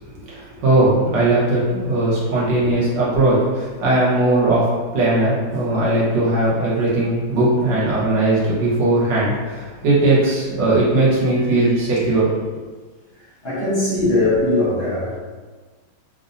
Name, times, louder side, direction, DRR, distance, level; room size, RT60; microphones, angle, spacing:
voice 1, 0.3-4.7 4.9-12.3, right 2 dB, 65° right, -8 dB, 1.7 m, -18 dB
voice 2, 13.1-15.2, left 2 dB, 45° left, -10 dB, 0.8 m, -21 dB
4.2 x 2.6 x 2.6 m, 1.4 s
omnidirectional pair, 2.2 m